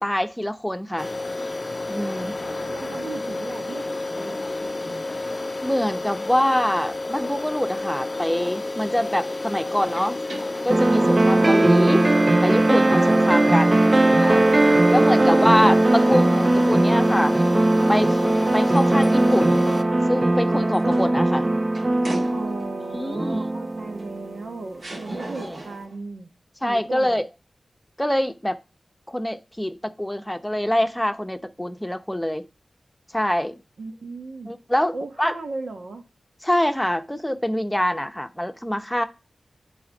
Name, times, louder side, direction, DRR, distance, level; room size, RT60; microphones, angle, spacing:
voice 1, 0.0-1.1 1.9-2.3 5.6-10.2 10.6-12.1 12.4-13.8 14.2-14.5 14.9-17.4 17.9-18.2 18.5-19.6 20.1-21.5 22.9-23.4 25.1-25.6 26.6-27.2 28.0-28.6 29.1-32.4 33.1-33.5 34.5-35.4 36.4-39.0, left 1 dB, 10° left, 0.8 m, -24 dB
sound 1, 1.0-19.8, left 2 dB, 40° left, 0.5 m, -30 dB
voice 2, 2.0-5.0 11.4-11.6 22.3-26.3 26.6-27.2 33.8-34.6 34.9-36.0, right 3 dB, 85° right, 1.2 m, -36 dB
sound 2, 9.7-12.6 13.1-13.2 18.5-22.9 24.0-24.1 24.8-26.0, right 2 dB, 65° right, 1.9 m, -38 dB
sound 3, 10.7-24.3, right 2 dB, 35° right, 0.4 m, -19 dB
8.7 x 4.2 x 5.2 m
wide cardioid pair, 75°, 0 cm